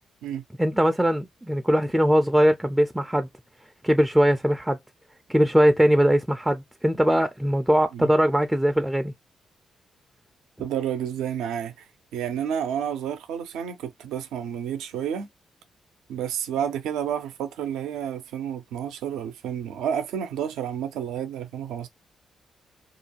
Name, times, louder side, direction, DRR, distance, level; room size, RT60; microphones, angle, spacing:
voice 1, 0.6-3.3 3.8-4.8 5.3-9.1, equal, 10° right, 0.4 m, -21 dB
voice 2, 10.6-11.8 12.1-15.3 16.1-21.9, right 9 dB, 80° right, 0.5 m, -30 dB
2.5 x 2.2 x 2.8 m
supercardioid pair, 50°, 0 cm